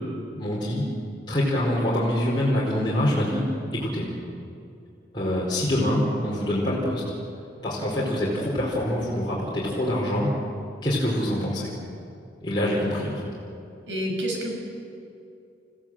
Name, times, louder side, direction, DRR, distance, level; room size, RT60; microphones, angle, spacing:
voice 1, 0.4-0.8 1.3-3.5 3.7-4.1 5.1-7.0 7.6-10.3 10.8-11.7 12.4-13.3, left 1 dB, 25° left, -7 dB, 4.7 m, -25 dB
voice 2, 13.9-14.5, equal, 80° right, 1 dB, 6.2 m, -28 dB
30.0 x 16.5 x 7.7 m, 2.5 s
head